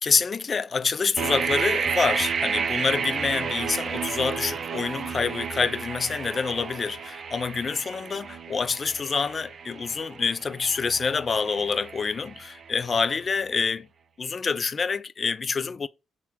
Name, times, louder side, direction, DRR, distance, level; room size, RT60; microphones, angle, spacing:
voice 1, 0.0-13.9 14.2-15.9, left 5 dB, 40° left, 0.3 m, -27 dB
sound 1, 1.2-13.0, right 6 dB, 50° right, 0.4 m, -31 dB
3.7 x 2.1 x 4.4 m
cardioid pair, 90°, 0 cm